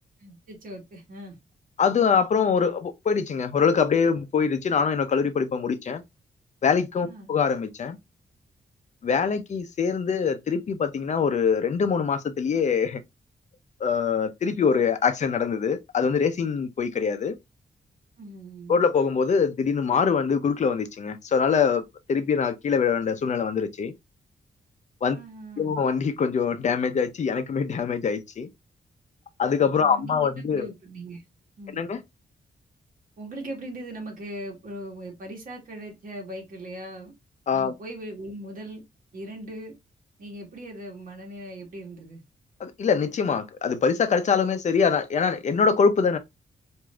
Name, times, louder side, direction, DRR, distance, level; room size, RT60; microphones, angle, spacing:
voice 1, 0.2-1.4 7.0-7.3 18.2-18.9 25.1-25.7 29.8-31.2 31.6-31.8 33.2-37.1 37.5-38.8 39.1-39.8 40.2-42.2, right 1 dB, 55° right, 1.5 m, -39 dB
voice 2, 1.8-6.0 6.6-8.0 9.0-13.0 13.8-17.3 18.7-21.8 22.1-23.9 25.0-25.2 25.6-28.5 29.4-30.7 31.7-32.0 37.5-37.7 42.6-46.2, left 6 dB, 45° left, 0.6 m, -24 dB
4.7 x 2.6 x 2.3 m
wide cardioid pair, 160°, 16 cm